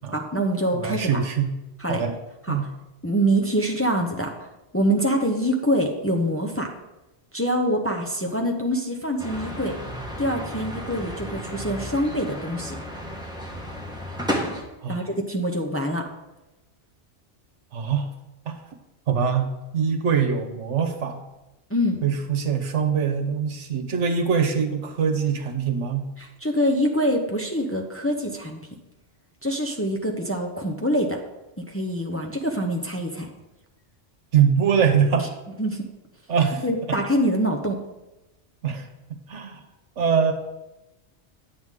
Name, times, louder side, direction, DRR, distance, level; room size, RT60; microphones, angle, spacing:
voice 1, 0.1-1.1 1.8-2.0 2.5-2.6 3.0-4.3 4.7-6.7 7.3-9.7 10.2-12.8 14.3-14.5 14.9-16.1 21.7-22.0 26.2-28.6 29.4-31.2 31.6-33.3 35.6-35.8 36.6-37.8, equal, 15° left, 1 dB, 0.8 m, -25 dB
voice 2, 0.7-1.5 1.8-2.1 2.5-2.7 14.8-15.1 17.7-18.1 18.5-18.6 19.1-21.2 22.0-26.1 34.3-35.4 36.3-36.6 36.9-37.0 38.6-39.6 40.0-40.3, right 7 dB, 85° right, 6 dB, 1.3 m, -23 dB
sound 1, 9.2-14.6, equal, 5° right, 1.3 m, -33 dB
9.5 x 8.0 x 3.7 m, 0.98 s
omnidirectional pair, 1.2 m